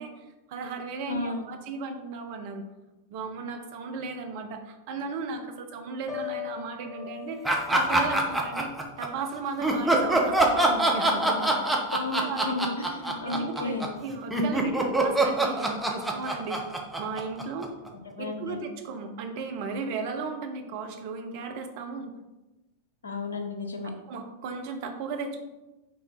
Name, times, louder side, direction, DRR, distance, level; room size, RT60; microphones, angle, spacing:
voice 1, 0.0-2.6 3.1-8.7 9.0-11.7 12.2-12.5 13.2-13.8 14.0-16.6 17.0-17.7 18.2-22.1 24.1-25.4, right 4 dB, 50° right, 5 dB, 0.9 m, -35 dB
voice 2, 1.1-1.5 11.9-13.9 18.1-18.6 23.0-23.9, left 2 dB, 70° left, 5 dB, 0.9 m, -33 dB
Piano, 6.1-10.0 10.4-10.8, left 10 dB, 25° right, 1.8 m, -42 dB
sound 1, 7.4-9.1 9.6-17.9, right 2 dB, 5° right, 1.0 m, -24 dB
5.5 x 3.8 x 5.4 m, 1.0 s
figure-of-eight pair, 90°, 0 cm